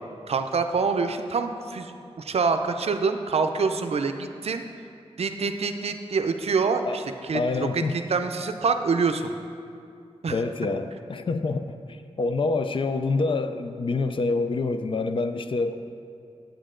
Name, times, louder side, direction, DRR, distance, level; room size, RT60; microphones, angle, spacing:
voice 1, 0.3-4.6 5.2-9.3 10.2-10.4, right 4 dB, 65° right, 7 dB, 0.5 m, -26 dB
voice 2, 7.3-8.0 10.3-15.8, left 3 dB, 50° left, 9 dB, 0.4 m, -27 dB
8.6 x 8.0 x 3.7 m, 2.4 s
wide cardioid pair, 100°, 11 cm